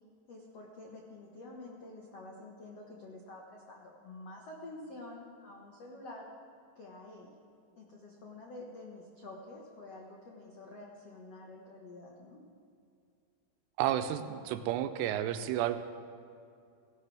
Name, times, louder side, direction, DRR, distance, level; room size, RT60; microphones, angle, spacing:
voice 1, 0.3-6.3 6.7-7.3 7.7-12.4, left 2 dB, 85° left, -2 dB, 1.4 m, -48 dB
voice 2, 13.8-15.8, right 11 dB, 80° right, 10 dB, 2.7 m, -31 dB
18.0 x 16.5 x 3.4 m, 2.4 s
omnidirectional pair, 5.1 m